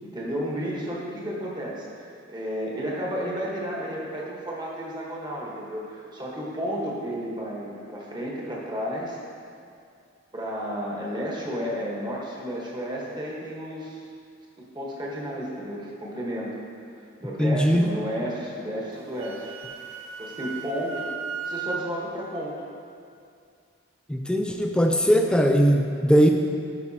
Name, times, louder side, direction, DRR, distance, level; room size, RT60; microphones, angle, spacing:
voice 1, 0.0-9.2 10.3-14.0 14.6-16.5 17.2-19.5 20.2-21.1 21.4-22.6, equal, 20° right, -4 dB, 1.2 m, -32 dB
voice 2, 17.4-17.8 24.1-26.3, equal, 5° left, 3 dB, 0.4 m, -20 dB
Wind instrument woodwind instrument, 18.9-21.9, right 6 dB, 75° right, 0.4 m, -35 dB
12.0 x 5.5 x 2.8 m, 2.3 s
head